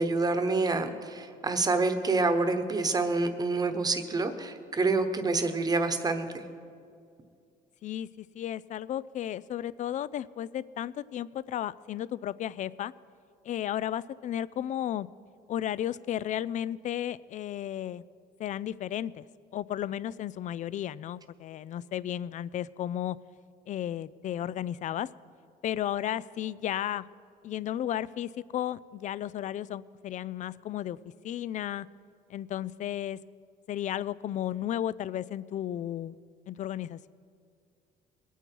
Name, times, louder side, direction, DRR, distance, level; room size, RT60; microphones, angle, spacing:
voice 1, 0.0-6.4, right 3 dB, 25° right, 8 dB, 1.1 m, -27 dB
voice 2, 7.8-12.9 13.4-15.1 15.5-18.0 18.4-19.3 19.5-23.2 23.7-25.1 25.6-27.0 27.4-31.0 31.2-31.9 32.3-33.2 33.7-36.2 36.5-37.1, left 11 dB, 45° left, 19 dB, 0.4 m, -34 dB
21.0 x 9.1 x 4.6 m, 2.3 s
cardioid pair, 110°, 17 cm